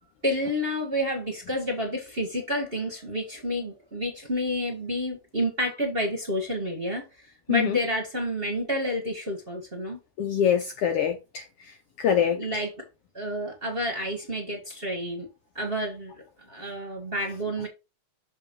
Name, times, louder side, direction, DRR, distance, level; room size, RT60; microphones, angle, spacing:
voice 1, 0.2-7.0 7.5-10.0 12.3-12.7 13.1-15.3 15.5-16.1 16.5-17.7, equal, 25° right, 1.5 m, -29 dB
voice 2, 10.2-12.6, left 8 dB, 70° left, 1.5 m, -25 dB
6.9 x 3.7 x 5.3 m
omnidirectional pair, 3.3 m